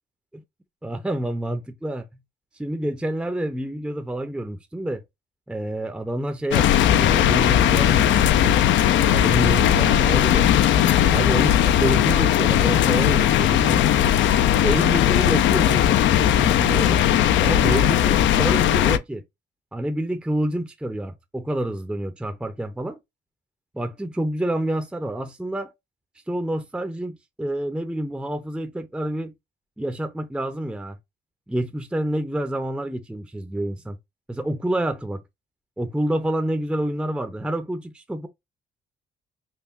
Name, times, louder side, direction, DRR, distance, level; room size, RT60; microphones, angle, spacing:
voice 1, 0.8-2.0 2.5-5.0 5.5-8.5 9.0-10.5 11.1-13.8 14.6-17.0 17.4-19.2 19.7-23.0 23.7-25.7 26.3-29.3 29.8-31.0 31.5-34.0 34.3-35.2 35.8-38.3, right 1 dB, 5° right, 0.5 m, -28 dB
sound 1, 6.5-19.0, left 11 dB, 70° left, 0.4 m, -18 dB
5.5 x 2.1 x 2.5 m
cardioid pair, 90°, 20 cm